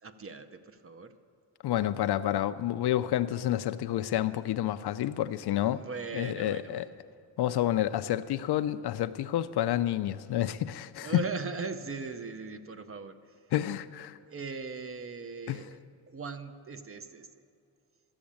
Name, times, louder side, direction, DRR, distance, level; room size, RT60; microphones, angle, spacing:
voice 1, 0.0-1.1 5.7-6.9 11.0-13.3 14.3-15.8 16.1-17.4, right 4 dB, 30° right, 0.6 m, -39 dB
voice 2, 1.6-5.8 6.1-6.9 7.4-11.1 13.5-14.2 15.5-15.6, left 12 dB, 65° left, 0.5 m, -29 dB
13.0 x 7.2 x 8.6 m
cardioid pair, 135°, 44 cm